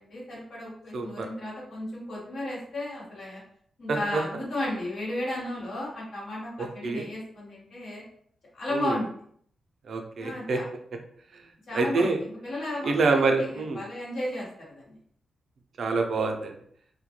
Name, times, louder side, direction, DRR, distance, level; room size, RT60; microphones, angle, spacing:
voice 1, 0.0-3.4 3.8-8.0 8.5-9.1 10.2-10.6 11.7-12.1 12.4-15.0, left 1 dB, 70° left, -5 dB, 1.1 m, -34 dB
voice 2, 0.9-1.3 3.9-4.2 6.6-7.1 8.7-9.0 9.9-10.6 11.3-11.4 11.7-12.2 12.8-13.8 15.8-16.5, right 3 dB, 70° right, 4 dB, 0.4 m, -26 dB
2.2 x 2.1 x 2.9 m, 0.63 s
cardioid pair, 70°, 0 cm